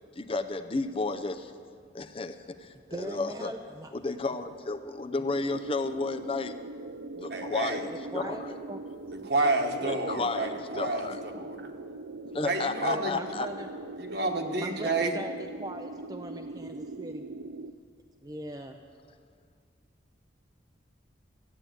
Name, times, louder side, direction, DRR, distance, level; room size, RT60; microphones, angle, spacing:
voice 1, 0.2-1.5 1.9-3.5 3.9-6.5 7.2-8.5 9.8-11.2 12.3-13.5, left 3 dB, 30° left, 9 dB, 0.5 m, -32 dB
voice 2, 2.9-3.9 7.9-8.8 12.8-13.7 14.6-17.3 18.2-18.8, right 1 dB, 20° right, 4 dB, 0.5 m, -40 dB
sound 1, 5.3-17.7, right 2 dB, 80° right, 0.5 m, -41 dB
voice 3, 7.3-7.8 9.2-11.7 12.4-13.1 14.0-15.1, right 2 dB, 55° right, 4 dB, 1.3 m, -29 dB
15.0 x 8.5 x 9.1 m, 2.1 s
head